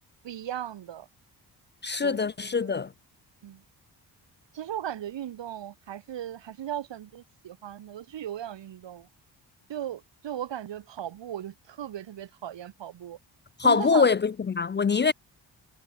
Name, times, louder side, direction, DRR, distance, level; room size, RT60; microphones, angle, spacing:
voice 1, 0.2-1.1 2.0-2.2 2.6-2.8 3.4-3.6 4.5-9.1 9.7-13.2 13.6-14.1 15.1-15.2, right 11 dB, 85° right, 3.3 m, -37 dB
voice 2, 1.8-2.9 13.6-15.1, left 5 dB, 25° left, 0.4 m, -23 dB
wide cardioid pair, 165°, 42 cm